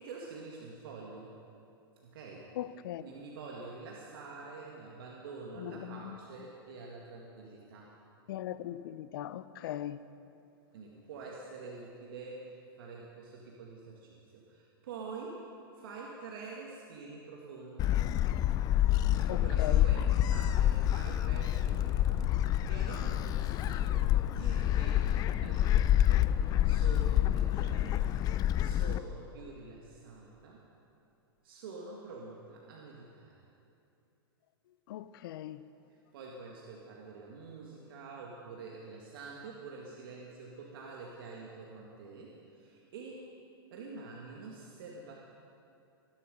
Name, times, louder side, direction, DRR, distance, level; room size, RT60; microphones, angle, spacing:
voice 1, 0.0-1.3 2.0-2.6 3.0-7.9 10.7-15.4 15.7-18.1 19.1-28.2 28.6-30.6 31.4-33.3 36.1-43.2 43.7-45.2, right 4 dB, 70° right, 2.1 m, -47 dB
voice 2, 2.6-3.0 5.6-6.2 8.3-10.0 19.3-19.8 34.9-35.6, left 12 dB, 65° left, 0.7 m, -39 dB
Gull seagull, 17.8-29.0, left 12 dB, 30° left, 0.5 m, -28 dB
19.5 x 11.5 x 5.3 m
hypercardioid pair, 115°, 13 cm